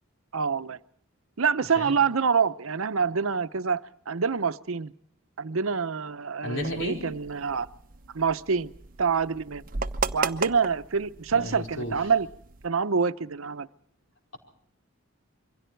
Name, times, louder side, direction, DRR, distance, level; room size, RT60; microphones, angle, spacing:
voice 1, 0.3-0.8 1.4-3.8 4.1-4.9 5.4-7.7 8.1-8.7 9.0-9.6 10.1-12.3 12.6-13.7, right 5 dB, 80° right, 13 dB, 0.8 m, -26 dB
voice 2, 6.4-7.1 11.3-12.0, left 1 dB, 65° left, 2 dB, 4.8 m, -33 dB
sound 1, 6.6-12.7, right 4 dB, 40° right, 0.8 m, -36 dB
27.0 x 23.5 x 4.5 m, 0.65 s
head